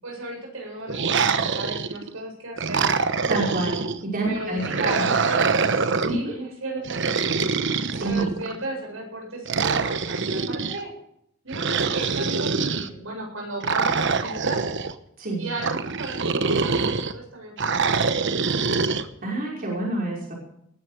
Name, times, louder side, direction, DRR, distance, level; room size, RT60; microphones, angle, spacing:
voice 1, 0.0-2.9 4.3-5.5 6.0-7.0 8.0-10.9 11.4-14.6 15.4-18.8, right 2 dB, 80° right, 0 dB, 8.0 m, -35 dB
sound 1, 0.9-2.1 2.6-4.0 4.6-6.2 6.8-8.6 9.5-10.8 11.5-12.9 13.6-14.9 15.6-17.1 17.6-19.0, right 5 dB, 65° right, 1.1 m, -24 dB
voice 2, 3.3-5.1 6.0-6.3 7.9-8.3 15.2-15.5 19.2-20.3, right 2 dB, 45° right, -3 dB, 5.6 m, -27 dB
20.0 x 13.0 x 5.0 m, 0.74 s
head